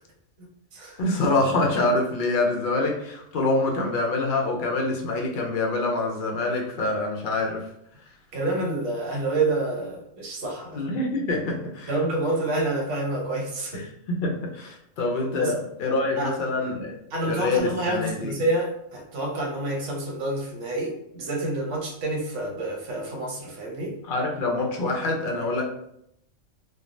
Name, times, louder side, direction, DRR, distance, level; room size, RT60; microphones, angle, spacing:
voice 1, 0.4-1.0 8.3-10.8 11.9-13.8 15.4-15.6 16.2-16.3 17.1-24.0, right 2 dB, 70° right, -1 dB, 1.1 m, -28 dB
voice 2, 1.0-7.7 10.7-11.9 13.7-16.9 17.3-18.3 24.1-25.6, left 2 dB, 60° left, 0 dB, 0.6 m, -25 dB
3.2 x 2.2 x 2.5 m, 0.76 s
omnidirectional pair, 1.3 m